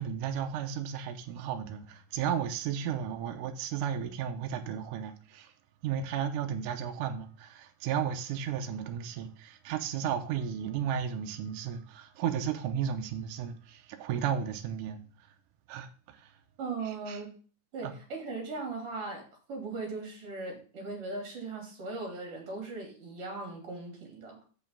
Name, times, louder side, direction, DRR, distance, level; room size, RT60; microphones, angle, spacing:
voice 1, 0.0-5.5 5.8-15.4 15.7-16.4 16.8-17.2 17.8-17.9, right 8 dB, 70° right, 2.1 m, -34 dB
voice 2, 16.6-17.3 17.7-24.4, right 3 dB, 40° right, 3.6 m, -38 dB
8.1 x 5.5 x 5.5 m
omnidirectional pair, 4.4 m